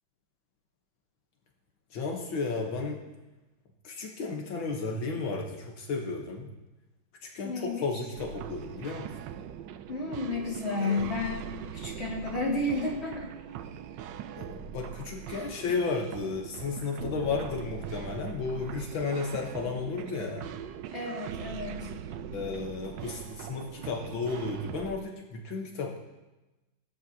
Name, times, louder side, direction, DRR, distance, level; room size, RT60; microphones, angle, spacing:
voice 1, 1.9-3.0 3.8-6.5 7.2-9.1 10.8-11.1 14.3-20.5 22.3-26.0, left 4 dB, 85° left, 1 dB, 2.0 m, -33 dB
voice 2, 7.4-7.9 9.9-13.3 20.9-21.9, left 2 dB, 35° left, -4 dB, 3.2 m, -32 dB
sound 1, 8.2-25.0, right 8 dB, 75° right, 1.2 m, -41 dB
17.5 x 13.5 x 2.9 m, 1.1 s
omnidirectional pair, 2.1 m